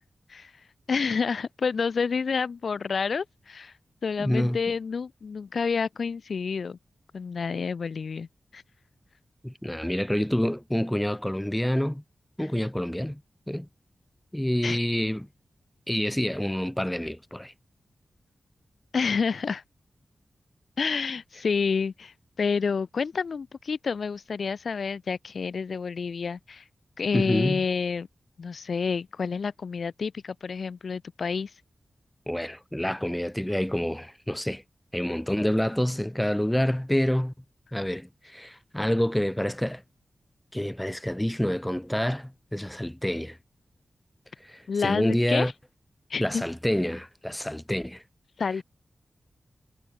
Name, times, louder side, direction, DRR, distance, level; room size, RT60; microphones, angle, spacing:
voice 1, 0.9-3.7 4.0-6.8 7.1-8.3 8.5-8.6 12.4-12.5 14.6-14.8 18.9-19.6 20.8-26.6 27.0-28.1 28.4-31.5 44.7-45.5 46.1-46.4 48.4-48.6, left 5 dB, 60° left, 0.6 m, -29 dB
voice 2, 4.2-4.6 9.4-12.0 12.4-13.2 13.5-13.7 14.3-15.3 15.9-17.5 27.1-27.6 32.3-34.6 34.9-37.3 37.7-39.8 40.5-43.4 44.4-45.5 46.2-48.0, equal, 5° left, 0.4 m, -27 dB
wide cardioid pair, 165°, 0 cm